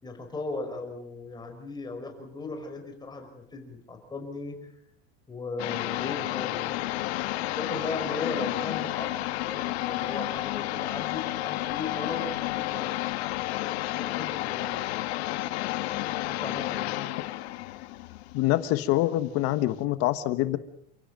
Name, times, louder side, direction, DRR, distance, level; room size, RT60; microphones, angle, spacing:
voice 1, 0.0-4.7 5.3-7.3 7.6-13.0 13.9-15.1 16.3-17.0, left 3 dB, 15° left, 4 dB, 5.5 m, -37 dB
sound 1, 5.6-19.0, left 17 dB, 80° left, 1.7 m, -31 dB
voice 2, 18.3-20.6, left 15 dB, 50° left, 12 dB, 1.5 m, -25 dB
29.5 x 16.5 x 7.7 m, 0.72 s
supercardioid pair, 160°, 32 cm